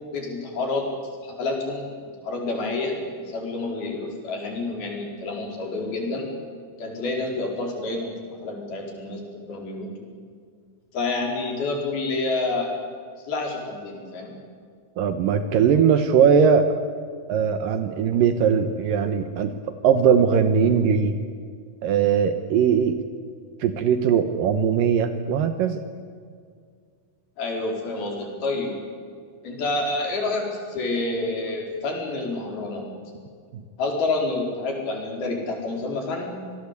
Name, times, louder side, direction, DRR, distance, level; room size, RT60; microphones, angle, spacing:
voice 1, 0.1-0.9 1.2-6.3 6.8-8.1 8.4-9.9 10.9-12.7 13.2-14.3 27.4-28.7 29.4-32.9 33.8-36.3, left 2 dB, 80° left, 1 dB, 6.5 m, -28 dB
voice 2, 15.0-16.8 17.3-19.5 19.8-21.2 21.8-23.0 23.6-25.8 33.5-33.6, right 7 dB, 70° right, 9 dB, 2.6 m, -20 dB
27.0 x 19.5 x 8.3 m, 2.1 s
omnidirectional pair, 4.3 m